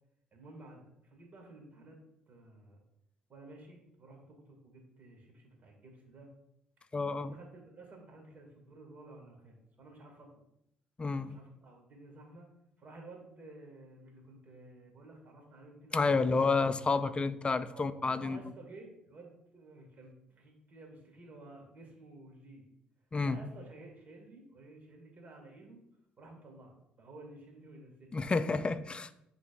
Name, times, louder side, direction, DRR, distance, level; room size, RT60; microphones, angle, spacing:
voice 1, 0.3-2.0 2.3-2.8 3.3-6.3 7.1-10.3 11.2-12.5 12.8-16.5 17.7-22.6 23.2-25.8 26.2-28.7, right 2 dB, 45° right, 1 dB, 2.2 m, -53 dB
voice 2, 6.9-7.3 11.0-11.4 15.9-18.4 23.1-23.4 28.1-29.1, left 4 dB, 25° left, 13 dB, 0.5 m, -30 dB
10.0 x 4.0 x 2.6 m, 0.80 s
hypercardioid pair, 55°, 4 cm